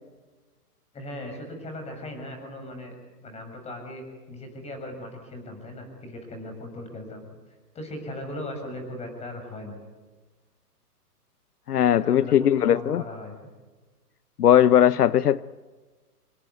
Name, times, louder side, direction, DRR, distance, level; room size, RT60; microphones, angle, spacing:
voice 1, 0.9-2.9 3.2-7.2 7.7-9.8 12.0-13.4, left 1 dB, 15° left, 5 dB, 6.6 m, -38 dB
voice 2, 11.7-13.0 14.4-15.4, left 10 dB, 75° left, 18 dB, 0.8 m, -19 dB
27.5 x 21.5 x 9.4 m, 1.3 s
hypercardioid pair, 140°, 47 cm